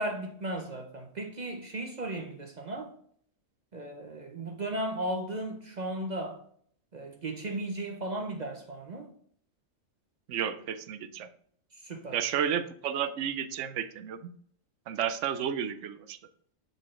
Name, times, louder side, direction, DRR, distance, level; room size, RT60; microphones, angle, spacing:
voice 1, 0.0-2.9 3.7-6.4 6.9-9.1 11.7-12.2, right 1 dB, 45° right, 0.6 m, -35 dB
voice 2, 10.3-11.3 12.1-14.3 14.9-16.2, right 9 dB, 70° right, 0.9 m, -32 dB
6.6 x 3.9 x 3.7 m
omnidirectional pair, 1.4 m